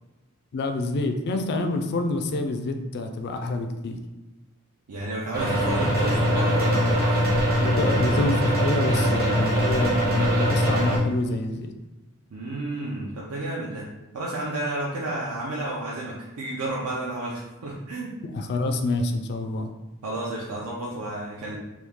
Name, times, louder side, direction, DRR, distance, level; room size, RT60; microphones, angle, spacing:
voice 1, 0.5-4.0 7.6-11.7 18.2-19.7, left 2 dB, 50° left, 6 dB, 0.4 m, -27 dB
voice 2, 4.9-7.3 12.3-13.9 14.1-18.2 20.0-21.6, right 2 dB, 85° right, -4 dB, 0.6 m, -31 dB
sound 1, 5.3-11.0, equal, 45° right, 0.9 m, -22 dB
3.1 x 2.3 x 3.5 m, 1.0 s
head